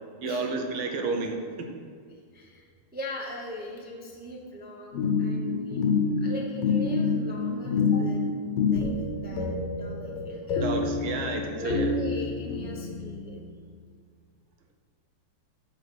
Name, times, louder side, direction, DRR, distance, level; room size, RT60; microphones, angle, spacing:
voice 1, 0.2-1.7 10.6-11.9, right 3 dB, 75° right, 3 dB, 1.6 m, -31 dB
voice 2, 2.1-2.7 2.9-5.8 6.2-8.3 8.7-10.8 11.6-13.4, left 1 dB, 10° right, -2 dB, 0.5 m, -40 dB
sound 1, 4.9-13.2, left 4 dB, 65° left, 1.6 m, -27 dB
6.6 x 6.1 x 6.1 m, 2.1 s
omnidirectional pair, 2.3 m